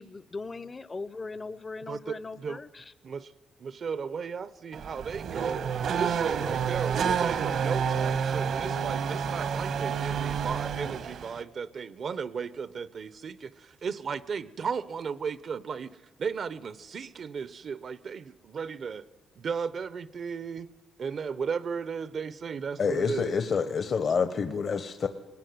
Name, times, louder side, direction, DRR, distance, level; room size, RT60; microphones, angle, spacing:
voice 1, 0.0-2.8, left 3 dB, 25° left, 16 dB, 0.6 m, -39 dB
voice 2, 1.9-2.6 3.0-3.3 3.6-5.6 5.9-19.0 19.4-20.7 21.0-23.4, right 6 dB, 50° right, 16 dB, 0.7 m, -35 dB
Race car auto racing / Accelerating revving vroom, 4.7-11.4, right 7 dB, 65° right, 1.2 m, -29 dB
voice 3, 22.8-25.1, left 5 dB, 50° left, 10 dB, 0.9 m, -27 dB
20.5 x 19.5 x 9.3 m, 1.2 s
cardioid pair, 110°, 0 cm